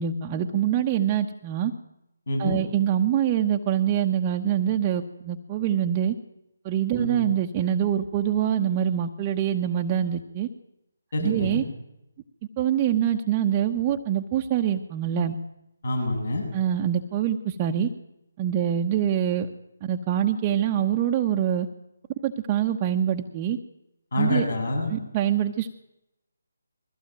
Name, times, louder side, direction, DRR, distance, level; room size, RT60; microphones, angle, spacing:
voice 1, 0.0-1.7 2.4-6.1 6.6-10.5 11.2-11.6 12.6-15.3 16.5-17.9 18.4-19.5 19.8-21.7 22.2-23.6 24.1-24.5 24.9-25.7, right 10 dB, 25° right, 3 dB, 1.1 m, -25 dB
voice 2, 2.3-2.6 7.0-7.2 11.1-11.6 15.8-16.4 24.1-24.9, left 1 dB, 65° left, 2 dB, 7.6 m, -26 dB
21.5 x 15.5 x 9.1 m, 0.89 s
figure-of-eight pair, 150°, 0 cm